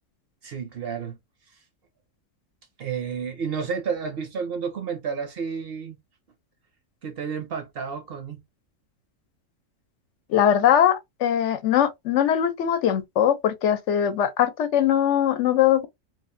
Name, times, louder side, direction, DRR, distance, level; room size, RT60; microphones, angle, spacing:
voice 1, 0.4-1.2 1.5-1.6 2.8-6.0 7.0-8.4, right 6 dB, 60° right, 0.7 m, -31 dB
voice 2, 10.3-15.9, left 10 dB, 70° left, 0.9 m, -21 dB
2.9 x 2.4 x 2.5 m
omnidirectional pair, 1.3 m